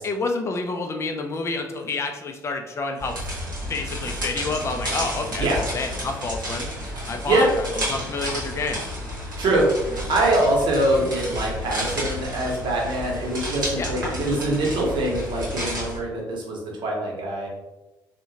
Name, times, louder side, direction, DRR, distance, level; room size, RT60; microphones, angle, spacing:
voice 1, 0.0-3.2 3.7-6.7 7.1-8.8 11.1-11.3 13.8-13.9, left 3 dB, 25° left, 4 dB, 0.4 m, -29 dB
sound 1, 3.0-16.0, equal, 80° right, 0.8 m, -31 dB
voice 2, 9.4-17.5, right 1 dB, 50° right, -2 dB, 0.9 m, -23 dB
3.5 x 2.1 x 2.7 m, 1.0 s
figure-of-eight pair, 45°, 10 cm